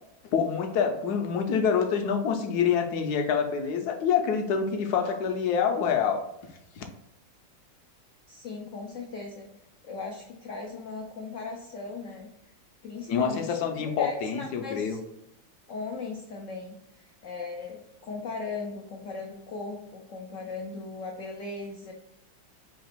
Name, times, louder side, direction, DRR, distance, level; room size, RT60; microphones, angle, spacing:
voice 1, 0.3-6.2 6.8-6.9 13.1-15.0, left 7 dB, 65° left, 5 dB, 1.0 m, -26 dB
voice 2, 8.3-9.5 9.8-12.3 12.8-15.0 15.7-21.9, left 4 dB, 85° left, 1 dB, 0.6 m, -38 dB
4.0 x 2.9 x 4.5 m, 0.82 s
omnidirectional pair, 2.1 m